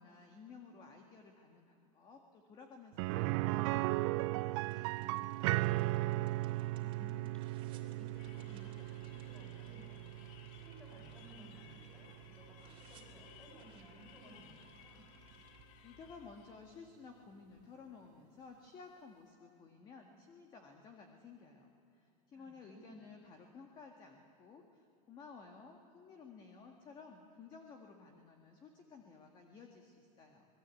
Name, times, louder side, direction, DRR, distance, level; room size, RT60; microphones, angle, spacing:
voice 1, 0.0-6.1 15.5-30.5, left 4 dB, 25° left, 3 dB, 1.8 m, -55 dB
sound 1, 3.0-12.8 13.1-13.2 15.6-15.7, right 19 dB, 55° right, 0.5 m, -37 dB
sound 2, 4.6-12.3 12.6-15.7, right 7 dB, 30° right, 2.9 m, -65 dB
voice 2, 6.8-15.0 22.3-23.0, equal, 10° left, -1 dB, 6.6 m, -58 dB
sound 3, 8.1-16.7, left 9 dB, 70° left, 1.7 m, -60 dB
27.0 x 20.0 x 8.4 m, 2.5 s
supercardioid pair, 165°, 18 cm